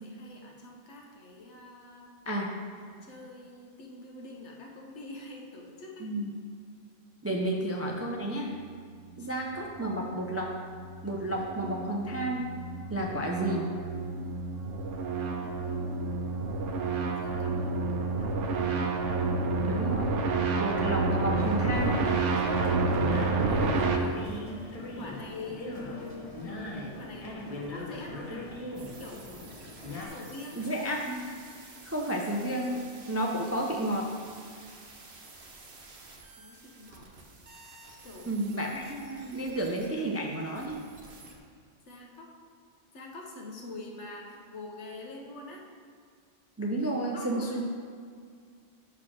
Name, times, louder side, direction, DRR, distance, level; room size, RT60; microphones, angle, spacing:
voice 1, 0.0-2.2 2.8-6.1 7.3-7.4 8.8-9.1 15.4-15.8 17.2-18.4 23.5-24.4 25.0-26.3 27.0-27.3 27.7-28.5 29.0-29.2 30.1-30.7 36.4-37.1 38.0-38.4 41.9-42.3 42.9-45.6 47.1-47.6, left 2 dB, 70° left, -1 dB, 1.2 m, -45 dB
voice 2, 7.2-8.5 9.2-10.6 11.0-12.5 12.9-13.7 19.7-20.1 20.6-22.0 30.6-31.3 31.9-34.1 38.3-40.8 46.6-47.6, right 1 dB, 20° right, 0 dB, 0.4 m, -31 dB
sound 1, 9.4-24.0, right 3 dB, 80° right, 1.0 m, -30 dB
sound 2, 21.4-30.1, left 1 dB, 35° left, 0.9 m, -40 dB
sound 3, 28.7-41.4, right 3 dB, 50° right, 1.0 m, -51 dB
5.9 x 4.7 x 6.2 m, 2.1 s
omnidirectional pair, 1.3 m